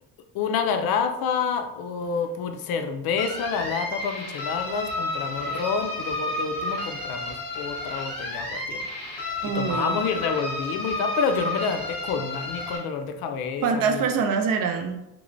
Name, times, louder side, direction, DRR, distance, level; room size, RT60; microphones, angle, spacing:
voice 1, 0.3-8.8 9.4-14.0, left 6 dB, 70° left, 7 dB, 0.5 m, -28 dB
sound 1, 3.2-12.8, left 2 dB, 40° left, 1.5 m, -31 dB
voice 2, 9.4-10.0 13.6-15.0, right 5 dB, 60° right, 5 dB, 0.5 m, -24 dB
3.1 x 3.0 x 2.6 m, 0.90 s
cardioid pair, 165°, 38 cm